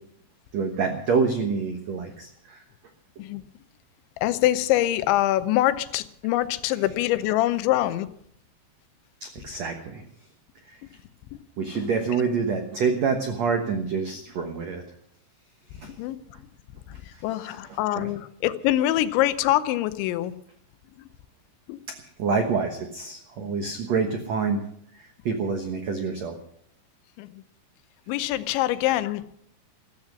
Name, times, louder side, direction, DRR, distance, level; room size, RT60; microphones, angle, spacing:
voice 1, 0.5-2.6 9.2-10.0 10.6-10.8 11.6-14.8 15.7-16.0 16.9-17.6 17.9-18.1 22.0-24.6 24.9-26.4, right 5 dB, 80° right, 5 dB, 1.5 m, -27 dB
voice 2, 4.2-8.1 11.7-11.8 15.8-16.2 16.9-20.3 21.0-21.1 21.7-21.8 27.2-27.4 28.1-29.3, left 14 dB, 85° left, 13 dB, 3.1 m, -24 dB
14.5 x 14.5 x 6.3 m, 0.69 s
omnidirectional pair, 5.2 m